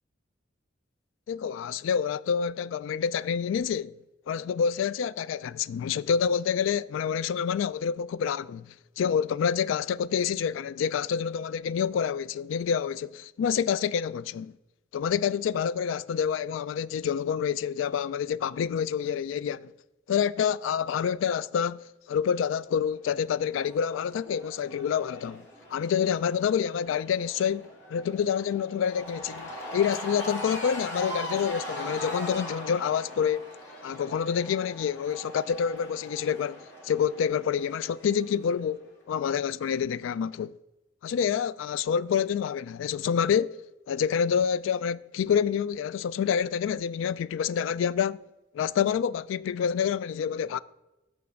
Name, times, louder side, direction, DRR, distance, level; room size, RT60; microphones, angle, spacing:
voice 1, 1.3-3.9 4.3-8.7 9.0-14.5 14.9-19.7 20.1-25.5 25.7-33.4 33.8-40.5 41.0-43.6 43.9-48.2 48.5-50.6, left 7 dB, 85° left, 0.3 m, -27 dB
Cheering / Crowd, 23.3-38.6, equal, 65° left, 2.1 m, -41 dB
6.7 x 6.2 x 5.6 m
head